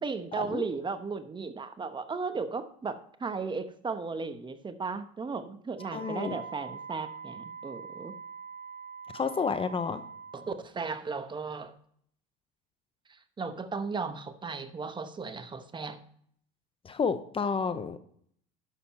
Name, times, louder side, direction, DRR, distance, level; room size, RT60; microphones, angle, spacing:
voice 1, 0.0-8.2 10.3-11.7 13.1-16.0, right 4 dB, 20° right, 10 dB, 1.0 m, -36 dB
Wind instrument woodwind instrument, 5.8-10.6, right 6 dB, 45° right, 3.5 m, -44 dB
voice 2, 5.9-6.4 9.1-10.0 16.8-18.0, left 5 dB, 25° left, 12 dB, 0.7 m, -30 dB
11.5 x 6.8 x 4.2 m, 0.63 s
supercardioid pair, 100°, 21 cm